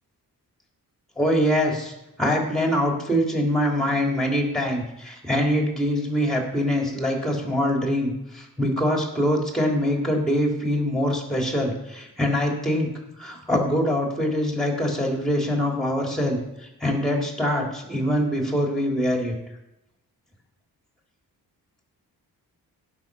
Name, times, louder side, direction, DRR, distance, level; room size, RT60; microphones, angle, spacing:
voice 1, 1.2-1.9 2.2-12.9 13.2-19.3, equal, ahead, 0 dB, 3.3 m, -24 dB
16.5 x 6.0 x 6.2 m, 0.93 s
cardioid pair, 105°, 37 cm